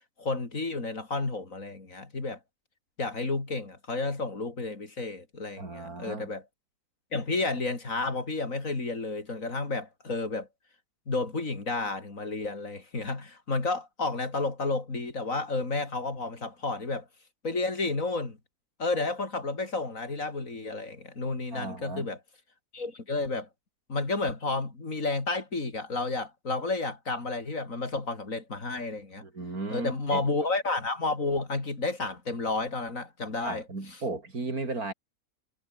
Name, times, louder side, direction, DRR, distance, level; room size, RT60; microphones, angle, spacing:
voice 1, 0.2-2.4 3.0-6.4 7.1-10.5 11.1-17.1 17.4-18.4 18.8-22.2 22.7-23.5 23.9-29.2 29.7-33.6, left 3 dB, 65° left, 4.1 m, -31 dB
voice 2, 5.6-6.3 21.5-22.1 29.2-30.3 33.4-34.9, right 3 dB, 85° right, 4.8 m, -35 dB
omnidirectional pair, 1.5 m